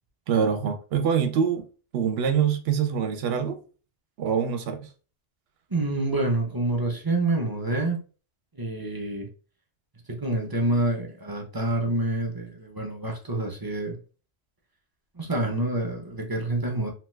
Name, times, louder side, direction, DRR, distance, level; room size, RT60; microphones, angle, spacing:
voice 1, 0.3-1.6 1.9-3.6 4.2-4.9, right 7 dB, 65° right, 0.8 m, -24 dB
voice 2, 5.7-8.0 8.5-9.3 10.1-14.0 15.1-16.9, right 2 dB, 25° right, 0.5 m, -27 dB
2.9 x 2.3 x 3.1 m
omnidirectional pair, 1.2 m